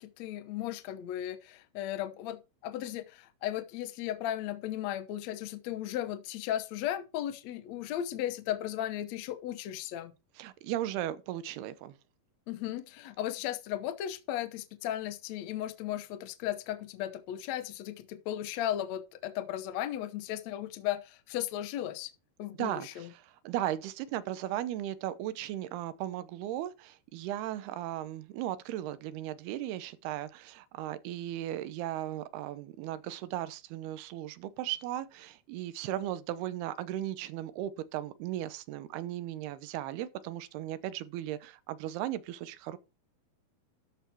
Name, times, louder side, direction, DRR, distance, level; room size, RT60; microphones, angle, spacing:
voice 1, 0.0-10.1 12.5-22.1 22.4-23.1, left 12 dB, 75° left, 1.6 m, -36 dB
voice 2, 10.4-12.0 22.6-42.8, right 13 dB, 90° right, 2.9 m, -36 dB
13.0 x 5.6 x 4.5 m
omnidirectional pair, 4.4 m